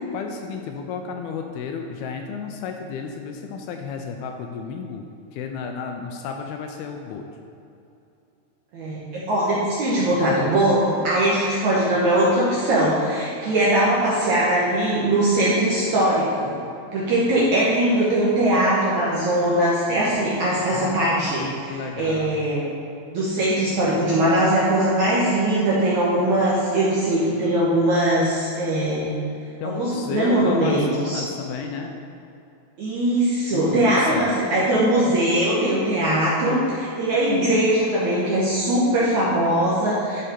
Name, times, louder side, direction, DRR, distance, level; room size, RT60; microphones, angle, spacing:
voice 1, 0.1-5.0 5.3-7.3 20.7-22.4 29.6-32.0 33.5-34.3, left 5 dB, 80° left, 4 dB, 2.3 m, -32 dB
voice 2, 8.7-16.5 16.9-22.6 23.1-29.1 29.6-31.2 32.8-40.2, right 1 dB, 65° right, -7 dB, 1.9 m, -21 dB
12.0 x 4.8 x 4.4 m, 2.7 s
omnidirectional pair, 4.7 m